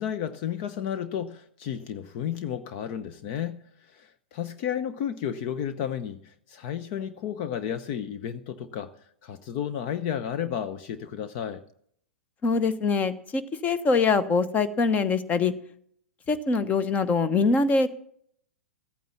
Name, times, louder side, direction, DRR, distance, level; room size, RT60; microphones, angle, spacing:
voice 1, 0.0-8.9 9.2-11.6, left 9 dB, 45° left, 0.9 m, -32 dB
voice 2, 12.4-15.5 16.3-17.9, left 4 dB, 25° left, 1.2 m, -23 dB
15.0 x 9.3 x 7.2 m
hypercardioid pair, 105°, 7 cm